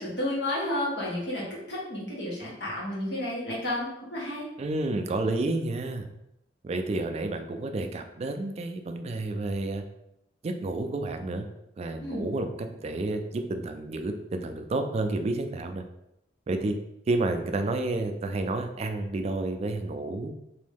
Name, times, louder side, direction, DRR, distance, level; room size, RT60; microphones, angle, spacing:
voice 1, 0.0-4.5 12.0-12.2, left 1 dB, 80° left, -6 dB, 1.4 m, -31 dB
voice 2, 4.6-6.1 6.6-9.8 10.4-11.5 11.8-15.8 16.5-16.8 17.1-20.3, right 2 dB, 35° right, 6 dB, 0.3 m, -30 dB
3.0 x 2.6 x 3.5 m, 0.84 s
head